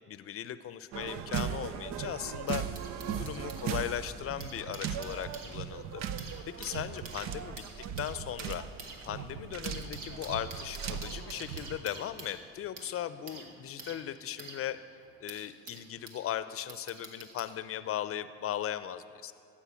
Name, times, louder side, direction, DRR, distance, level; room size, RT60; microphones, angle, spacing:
voice 1, 0.0-2.7 3.0-7.6 8.0-8.7 9.0-14.8 15.2-19.3, left 11 dB, 45° left, 14 dB, 0.6 m, -38 dB
sound 1, 0.9-11.8, right 8 dB, 60° right, 0.7 m, -38 dB
sound 2, 1.3-6.2, left 3 dB, 20° right, 2.3 m, -61 dB
sound 3, 1.7-3.7 4.2-16.3 16.7-17.6 18.5-18.6, right 3 dB, 85° right, 1.3 m, -48 dB
15.0 x 5.5 x 8.3 m, 2.5 s
hypercardioid pair, 60°, 30 cm